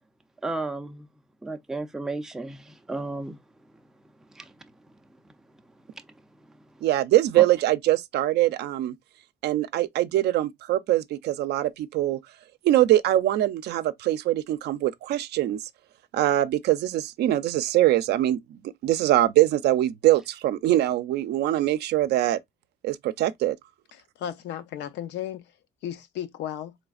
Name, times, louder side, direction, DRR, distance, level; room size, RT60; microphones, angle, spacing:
voice 1, 0.4-1.1 1.4-3.4 4.4-4.5, right 2 dB, 5° right, 0.4 m, -33 dB
voice 2, 6.8-8.9 9.4-12.2 12.6-15.6 16.1-18.4 18.8-22.4 22.8-23.6, right 14 dB, 70° right, 0.5 m, -23 dB
voice 3, 23.9-25.5 25.8-26.8, left 10 dB, 75° left, 0.7 m, -35 dB
4.1 x 3.2 x 2.3 m
cardioid pair, 155°, 18 cm